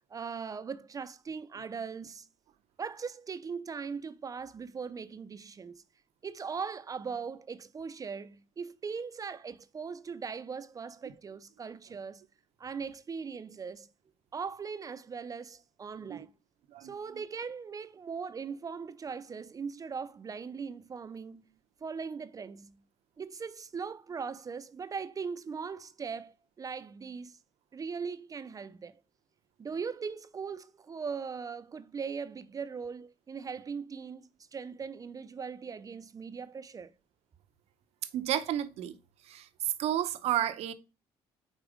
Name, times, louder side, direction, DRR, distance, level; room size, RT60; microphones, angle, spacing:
voice 1, 0.0-2.3 2.8-5.8 6.2-12.2 12.6-13.9 14.3-16.3 16.8-21.5 21.8-22.8 23.2-27.4 27.7-29.0 29.6-36.9, right 5 dB, 35° right, 0.5 m, -40 dB
voice 2, 38.1-39.0 39.2-40.7, right 11 dB, 70° right, 0.7 m, -31 dB
5.1 x 4.0 x 5.0 m
cardioid pair, 90°, 11 cm